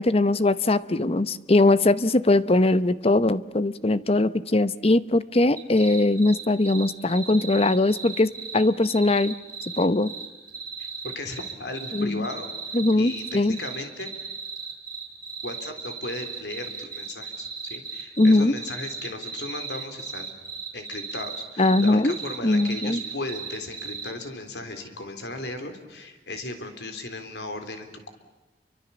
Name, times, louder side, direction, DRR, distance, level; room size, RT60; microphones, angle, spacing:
voice 1, 0.0-9.4 9.8-10.1 11.9-12.3 12.7-13.6 18.2-18.5 21.6-22.1 22.4-23.0, left 2 dB, 35° left, 15 dB, 0.8 m, -21 dB
sound 1, 5.5-24.1, right 5 dB, 20° right, 5.3 m, -36 dB
voice 2, 10.8-12.5 12.9-14.1 15.4-20.3 20.7-28.1, left 2 dB, 75° left, 7 dB, 3.7 m, -36 dB
29.5 x 24.5 x 7.1 m, 1.2 s
head